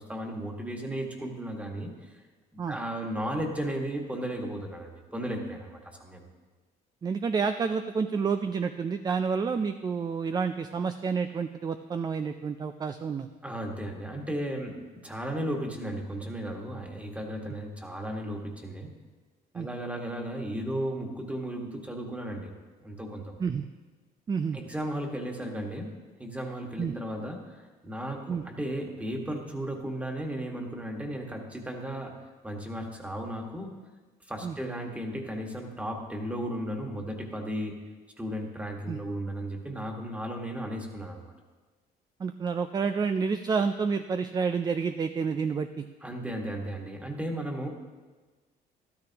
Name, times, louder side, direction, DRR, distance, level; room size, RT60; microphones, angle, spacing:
voice 1, 0.0-2.1 2.5-6.3 13.4-18.9 19.5-22.5 22.8-23.3 24.5-25.9 26.2-27.4 27.8-32.1 32.4-33.7 34.3-37.8 38.2-41.3 46.0-47.7, right 1 dB, 10° right, 1 dB, 1.7 m, -35 dB
voice 2, 7.0-13.3 19.5-19.7 23.4-23.6 24.3-24.6 26.8-27.0 28.3-28.4 34.4-34.6 38.9-39.0 42.2-45.9, right 5 dB, 25° right, 9 dB, 0.4 m, -29 dB
13.0 x 12.5 x 2.9 m, 1.3 s
cardioid pair, 110°, 17 cm